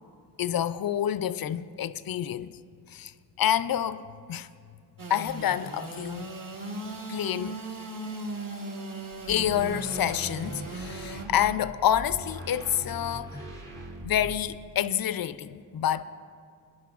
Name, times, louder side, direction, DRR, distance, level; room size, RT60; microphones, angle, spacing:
voice 1, 0.4-2.6 2.9-3.1 3.4-4.5 5.1-6.3 7.1-7.6 9.3-13.5 14.0-16.0, left 10 dB, 50° left, 0.4 m, -28 dB
Engine / Sawing, 5.0-11.3, right 2 dB, 45° right, 1.2 m, -38 dB
sound 1, 9.1-14.6, right 1 dB, 65° right, 1.9 m, -41 dB
22.0 x 9.9 x 2.4 m
cardioid pair, 60°, 46 cm